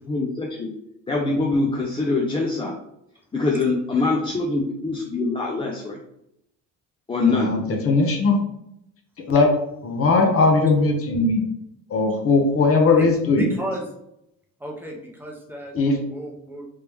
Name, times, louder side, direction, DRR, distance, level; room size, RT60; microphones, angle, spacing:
voice 1, 0.1-0.7 1.1-2.7 3.3-6.0 7.1-7.5, left 3 dB, 15° left, -1 dB, 0.4 m, -23 dB
voice 2, 7.3-7.6 7.8-8.4 9.3-9.5 9.8-11.5 11.9-13.5 15.7-16.0, left 3 dB, 40° left, 2 dB, 0.8 m, -19 dB
voice 3, 13.4-13.8 14.6-15.7 16.1-16.6, right 1 dB, 5° right, -2 dB, 0.8 m, -32 dB
3.3 x 2.8 x 3.4 m, 0.78 s
cardioid pair, 125°, 34 cm